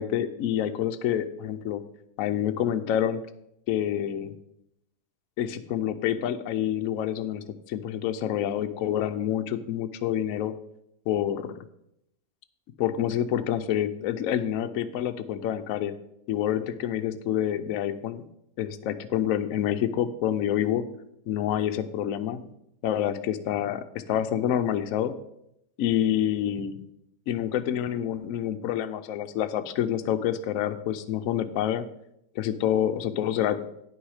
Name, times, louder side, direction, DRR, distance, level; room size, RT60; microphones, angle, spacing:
voice 1, 0.0-1.8 2.2-3.2 3.7-4.3 5.4-10.5 11.1-11.6 12.8-15.9 16.3-18.2 18.6-20.8 21.3-22.5 22.8-25.1 25.8-26.8 27.3-31.8 32.4-33.7, left 10 dB, 65° left, 9 dB, 0.9 m, -27 dB
9.7 x 6.1 x 4.9 m, 0.79 s
omnidirectional pair, 1.8 m